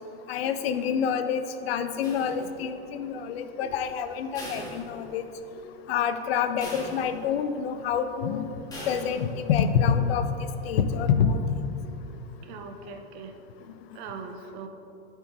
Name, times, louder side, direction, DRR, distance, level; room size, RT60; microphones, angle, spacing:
voice 1, 0.3-5.3 5.9-8.5 8.9-10.3 10.6-11.4, left 7 dB, 85° left, 9 dB, 0.6 m, -27 dB
sound 1, 2.0-2.8 4.3-5.5 5.9-6.0 6.6-7.5 8.7-9.5, equal, 10° left, 1.5 m, -40 dB
voice 2, 12.4-13.3 13.9-14.7, right 5 dB, 40° right, 6 dB, 0.6 m, -40 dB
6.8 x 4.6 x 4.6 m, 2.7 s
supercardioid pair, 160°, 30 cm